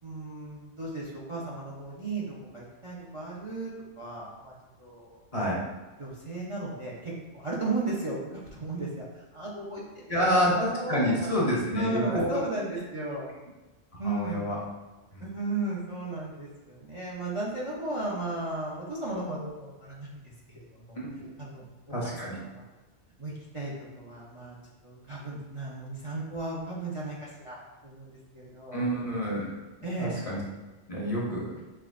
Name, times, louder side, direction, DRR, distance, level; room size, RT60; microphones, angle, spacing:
voice 1, 0.0-3.7 4.0-4.5 4.8-5.2 6.0-10.4 10.7-13.3 14.0-14.5 15.2-21.0 21.4-21.6 22.4-22.6 23.2-24.5 24.8-28.9 29.8-30.3, right 2 dB, 35° right, -5 dB, 0.6 m, -35 dB
voice 2, 10.1-12.3 14.0-14.6 15.1-15.2 21.2-21.3 21.9-22.4 28.7-29.4 30.0-30.4 30.9-31.5, equal, 35° left, -5 dB, 0.8 m, -28 dB
5.7 x 2.9 x 2.5 m, 1.1 s
omnidirectional pair, 1.2 m